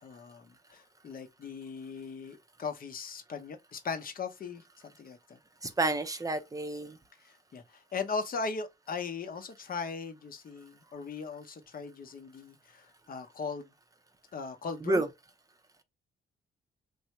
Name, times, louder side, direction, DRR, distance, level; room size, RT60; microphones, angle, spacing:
voice 1, 0.0-5.4 7.2-13.7 14.3-15.0, left 5 dB, 45° left, 0.8 m, -39 dB
voice 2, 5.6-7.0 14.8-15.1, right 2 dB, 15° right, 0.6 m, -30 dB
3.3 x 2.7 x 2.9 m
cardioid pair, 90°, 20 cm